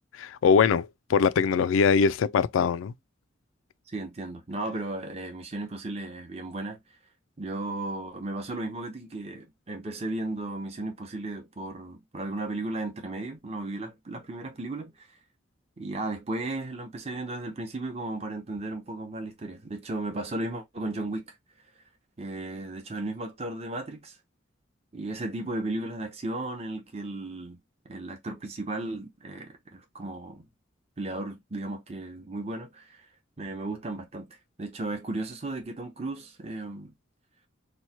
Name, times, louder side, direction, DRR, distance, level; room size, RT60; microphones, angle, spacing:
voice 1, 0.2-2.9, left 6 dB, 85° left, 0.3 m, -22 dB
voice 2, 3.9-6.8 7.4-15.1 15.8-21.3 22.2-24.2 24.9-27.6 27.8-30.5 31.0-33.1 33.4-36.9, right 2 dB, 30° right, 0.7 m, -35 dB
3.0 x 2.1 x 4.1 m
head